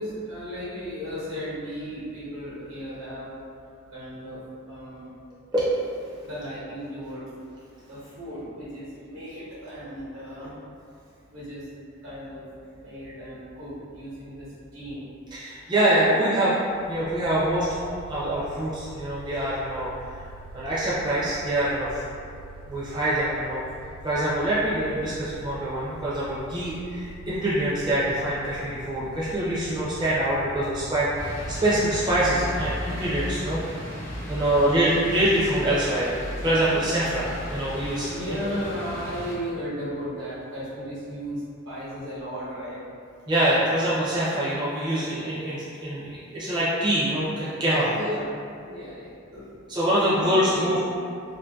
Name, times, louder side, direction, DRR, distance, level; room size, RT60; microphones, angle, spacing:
voice 1, 0.0-3.4 3.9-4.4 4.7-5.1 6.2-7.2 7.9-10.5 11.3-11.7 12.0-12.4 12.8-15.0 16.0-16.2 34.4-34.8 38.1-42.8 47.9-48.3 48.7-49.5 50.0-51.0, equal, 75° right, -10 dB, 1.0 m, -35 dB
voice 2, 15.3-16.5 16.8-19.9 20.5-22.3 22.7-23.6 24.0-33.6 34.3-36.1 36.4-38.1 43.3-47.9 49.7-50.8, right 1 dB, 20° right, -10 dB, 0.4 m, -25 dB
Mechanical fan, 16.6-33.4, right 2 dB, 90° left, 0.3 m, -44 dB
sound 1, 31.2-39.4, equal, 65° left, 0.7 m, -35 dB
2.6 x 2.5 x 2.3 m, 2.4 s
head